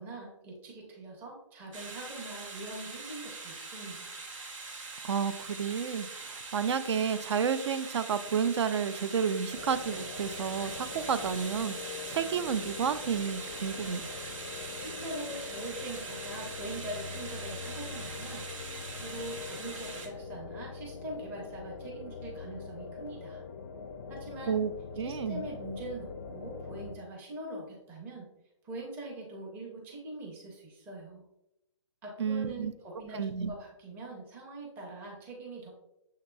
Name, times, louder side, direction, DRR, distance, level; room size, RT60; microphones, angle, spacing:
voice 1, 0.0-4.2 14.8-23.4 24.1-24.5 25.0-28.3 28.6-31.2 32.0-35.7, right 1 dB, 10° right, -2 dB, 0.6 m, -43 dB
sound 1, 1.7-20.1, right 3 dB, 85° right, 0.9 m, -42 dB
voice 2, 5.0-14.1 24.5-25.5 32.2-32.7 33.1-33.5, right 7 dB, 60° right, 12 dB, 0.4 m, -31 dB
sound 2, 9.5-27.0, left 5 dB, 35° left, 0.4 m, -43 dB
6.6 x 2.8 x 2.2 m, 0.87 s
hypercardioid pair, 155°, 16 cm